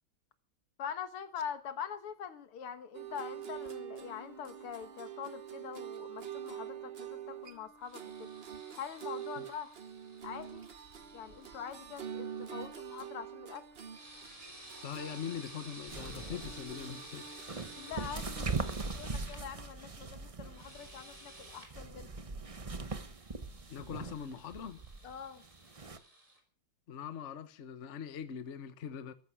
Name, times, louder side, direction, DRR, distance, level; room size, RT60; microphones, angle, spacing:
voice 1, 0.8-8.3 8.7-9.7 10.2-10.7 11.1-13.7 17.8-18.5 18.9-22.1 25.0-25.4, left 8 dB, 80° left, 2.3 m, -44 dB
sound 1, 2.9-18.5, right 9 dB, 45° right, 0.8 m, -46 dB
sound 2, 7.8-13.1 13.9-19.4 20.5-21.7 22.7-26.4, right 1 dB, 15° right, 3.3 m, -53 dB
voice 2, 14.8-17.3 23.7-24.8 26.9-29.1, left 8 dB, 40° left, 1.2 m, -42 dB
sound 3, 15.9-26.0, right 3 dB, 65° right, 0.3 m, -41 dB
14.5 x 13.5 x 6.2 m
omnidirectional pair, 2.4 m